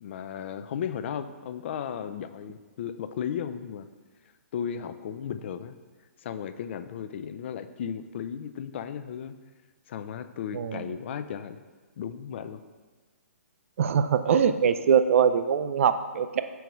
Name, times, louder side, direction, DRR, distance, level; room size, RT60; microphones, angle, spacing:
voice 1, 0.0-3.9 4.5-5.8 6.2-9.4 9.9-11.6 12.0-12.6, left 8 dB, 50° left, 10 dB, 0.4 m, -35 dB
voice 2, 13.8-16.4, right 7 dB, 60° right, 11 dB, 0.4 m, -23 dB
4.6 x 4.6 x 5.3 m, 1.4 s
hypercardioid pair, 135°, 8 cm